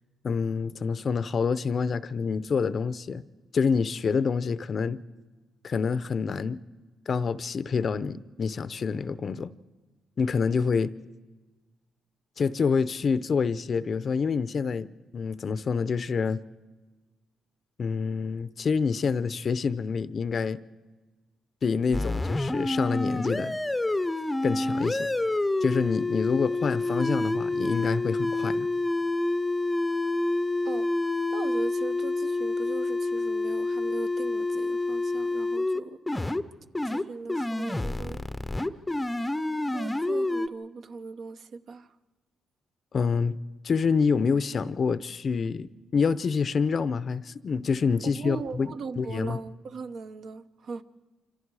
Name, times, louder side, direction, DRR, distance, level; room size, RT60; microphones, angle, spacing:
voice 1, 0.2-3.2 3.5-5.0 5.6-6.6 7.1-9.5 10.2-10.9 12.4-16.4 17.8-20.6 21.6-23.6 24.4-25.1 25.6-28.7 42.9-43.4 43.6-48.7 49.0-49.4, left 5 dB, 45° left, 0.6 m, -27 dB
sound 1, 21.9-35.8 36.1-36.4 36.7-37.0 37.3-40.5, left 2 dB, 10° left, 0.7 m, -28 dB
voice 2, 31.3-36.0 36.8-38.2 39.7-41.9 48.1-50.8, right 4 dB, 60° right, 1.0 m, -39 dB
26.5 x 26.5 x 4.8 m
cardioid pair, 115°, 0 cm